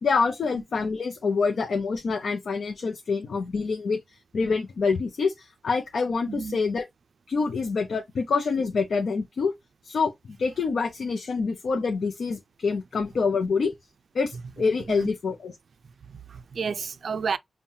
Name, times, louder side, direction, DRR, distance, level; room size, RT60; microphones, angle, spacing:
voice 1, 0.0-6.9 7.3-9.5 9.8-13.7 14.1-15.6, left 4 dB, 75° left, 0.5 m, -26 dB
voice 2, 6.3-6.6 14.9-15.1 16.1-17.4, right 6 dB, 65° right, 0.3 m, -31 dB
5.4 x 2.2 x 2.7 m
wide cardioid pair, 110°, 0 cm